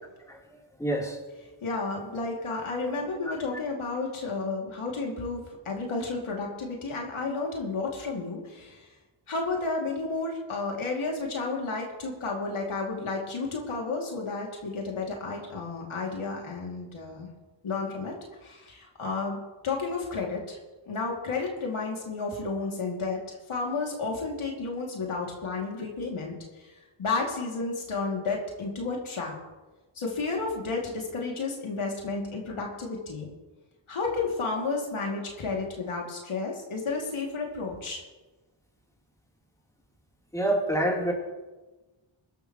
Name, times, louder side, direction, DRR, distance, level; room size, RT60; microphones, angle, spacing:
voice 1, 0.8-1.2 2.5-2.6 40.3-41.1, right 1 dB, 5° left, -2 dB, 3.5 m, -26 dB
voice 2, 1.6-8.9 9.3-17.3 17.6-18.1 18.4-20.6 20.9-26.7 27.0-29.3 30.0-33.3 33.9-38.0, left 3 dB, 90° left, -1 dB, 2.7 m, -32 dB
21.5 x 12.0 x 3.1 m, 1.2 s
cardioid pair, 60°, 48 cm